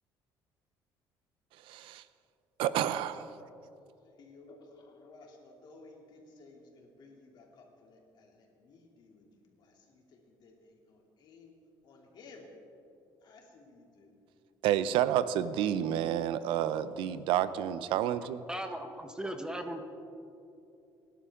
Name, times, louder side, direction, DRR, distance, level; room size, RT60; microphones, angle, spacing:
voice 1, 1.7-2.0 2.6-3.3 14.6-18.4, right 11 dB, 85° right, 14 dB, 0.6 m, -29 dB
voice 2, 3.8-11.6 11.8-12.5 13.2-14.1, left 3 dB, 55° left, -1 dB, 3.1 m, -56 dB
voice 3, 18.5-19.8, right 1 dB, 10° right, 6 dB, 1.1 m, -37 dB
23.5 x 11.5 x 3.7 m, 2.7 s
cardioid pair, 115°, 9 cm